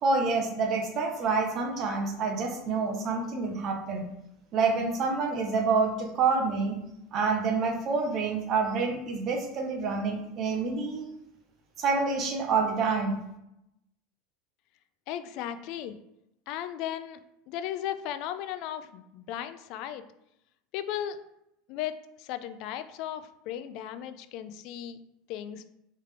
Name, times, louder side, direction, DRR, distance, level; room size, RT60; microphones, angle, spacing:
voice 1, 0.0-4.1 4.5-6.8 7.1-11.0 11.8-13.1, right 4 dB, 40° right, 2 dB, 0.8 m, -27 dB
voice 2, 15.1-16.0 16.5-17.2 17.5-20.0 20.7-21.2 21.7-25.0 25.3-25.6, left 11 dB, 55° left, 11 dB, 0.3 m, -36 dB
3.5 x 3.3 x 3.3 m, 0.83 s
supercardioid pair, 140°, 0 cm